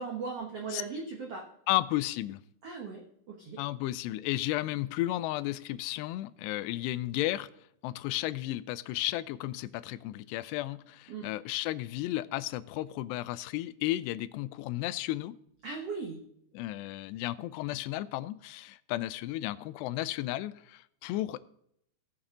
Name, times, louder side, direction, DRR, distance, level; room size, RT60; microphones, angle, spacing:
voice 1, 0.0-1.5 2.6-3.0 3.3-3.6 11.1-11.3 15.6-16.2, right 4 dB, 85° right, 1.3 m, -38 dB
voice 2, 1.7-2.4 3.6-7.5 7.8-15.4 16.5-21.4, left 16 dB, 90° left, 2.7 m, -33 dB
17.0 x 7.1 x 3.8 m
omnidirectional pair, 4.8 m